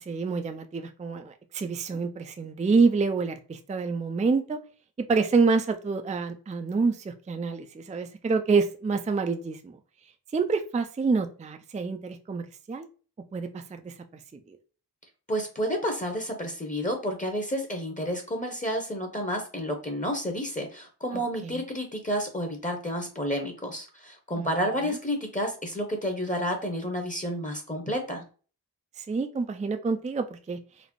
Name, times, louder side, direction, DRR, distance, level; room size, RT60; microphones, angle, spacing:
voice 1, 0.0-4.6 5.0-9.8 10.3-12.9 13.3-13.9 14.5-14.6 21.1-21.6 24.4-24.5 24.9-25.0 29.0-30.6, right 4 dB, 20° right, 6 dB, 0.4 m, -27 dB
voice 2, 15.3-28.2, equal, 20° left, 4 dB, 0.9 m, -30 dB
4.1 x 2.0 x 3.0 m, 0.37 s
cardioid pair, 45°, 41 cm